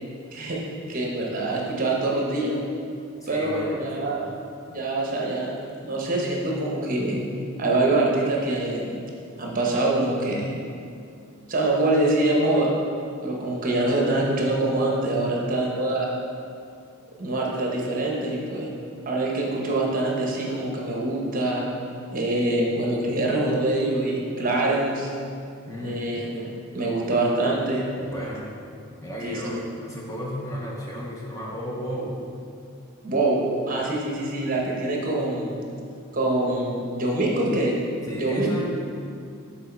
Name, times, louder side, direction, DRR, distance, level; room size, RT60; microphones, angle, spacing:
voice 1, 0.9-2.6 3.3-4.3 4.7-5.5 5.8-7.2 7.6-8.9 9.4-10.6 11.5-12.7 13.2-16.1 17.2-18.7 19.1-21.7 22.1-25.1 25.8-27.9 29.2-29.6 33.0-35.6 36.1-37.8 38.2-38.5, right 2 dB, 40° right, -2 dB, 0.9 m, -24 dB
voice 2, 3.2-3.9 25.6-26.0 28.0-28.5 29.0-32.2 38.1-38.7, equal, 15° left, -3 dB, 0.6 m, -33 dB
6.3 x 4.0 x 4.4 m, 2.4 s
head